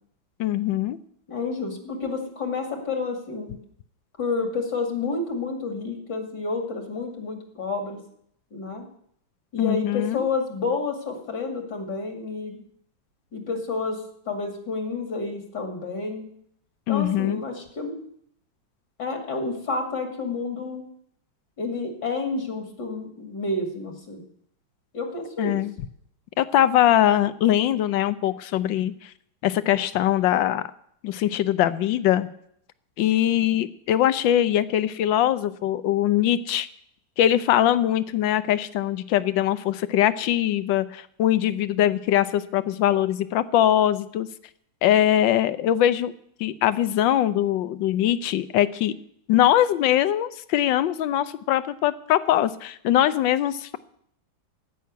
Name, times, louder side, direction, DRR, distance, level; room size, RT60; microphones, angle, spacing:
voice 1, 0.4-1.0 9.6-10.2 16.9-17.4 25.4-25.7 26.4-29.1 29.4-30.6 31.0-32.3 33.0-36.7 37.2-44.3 44.8-46.1 46.4-48.9 49.3-53.8, left 12 dB, 75° left, 15 dB, 1.4 m, -22 dB
voice 2, 1.3-3.6 4.2-8.0 8.5-8.8 9.5-12.6 13.3-16.3 16.9-17.9 19.0-20.8 21.6-24.2 24.9-25.6, left 3 dB, 60° left, 4 dB, 2.9 m, -30 dB
15.0 x 6.3 x 9.4 m, 0.68 s
omnidirectional pair, 2.1 m